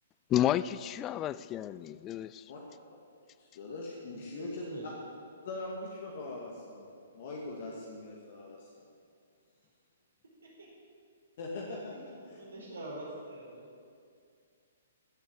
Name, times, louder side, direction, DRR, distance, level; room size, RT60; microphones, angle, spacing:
voice 1, 0.3-2.5, left 12 dB, 25° left, 0.4 m, -31 dB
voice 2, 3.4-4.6 5.4-8.9 11.4-12.4, left 2 dB, 50° left, 2.2 m, -42 dB
voice 3, 4.1-4.9 10.4-10.7 11.9-12.0 12.4-13.7, right 1 dB, 70° right, 4.5 m, -45 dB
15.5 x 8.2 x 8.3 m
figure-of-eight pair, 120°, 0 cm